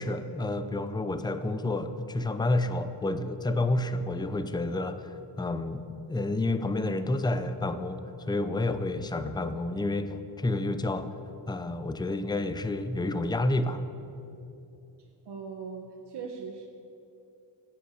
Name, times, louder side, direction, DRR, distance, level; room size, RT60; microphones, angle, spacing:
voice 1, 0.0-11.1 11.5-13.8, left 2 dB, 10° left, 10 dB, 0.6 m, -30 dB
voice 2, 15.2-16.7, right 5 dB, 60° right, 3 dB, 1.1 m, -39 dB
14.5 x 9.2 x 8.2 m, 2.8 s
wide cardioid pair, 140°, 45 cm